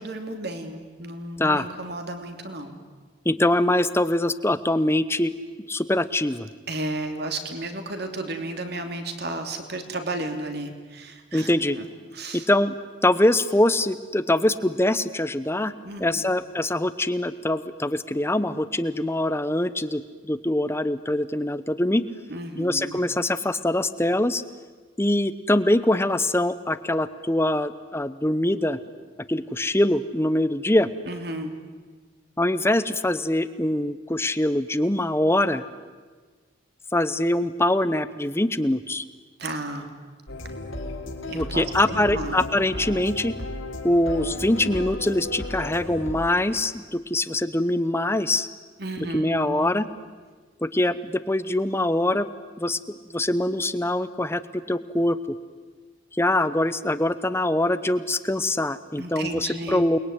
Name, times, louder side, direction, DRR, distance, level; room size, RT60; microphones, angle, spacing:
voice 1, 0.0-2.8 6.7-11.9 12.1-12.5 15.8-16.2 22.3-23.1 31.1-31.5 39.4-39.9 41.3-42.4 48.8-49.7 59.0-59.9, right 2 dB, 55° right, 5 dB, 3.0 m, -33 dB
voice 2, 3.2-5.3 5.7-6.5 11.3-11.8 12.3-12.8 13.0-15.7 16.0-22.0 22.6-24.4 25.0-28.8 29.3-30.9 32.4-35.6 36.9-39.1 41.3-43.3 43.8-48.5 49.0-49.9 50.6-52.3 52.6-55.4 56.1-60.0, left 1 dB, 15° left, 13 dB, 0.8 m, -23 dB
sound 1, 40.3-46.3, left 1 dB, 90° left, 4.0 m, -34 dB
29.0 x 21.5 x 9.5 m, 1.4 s
head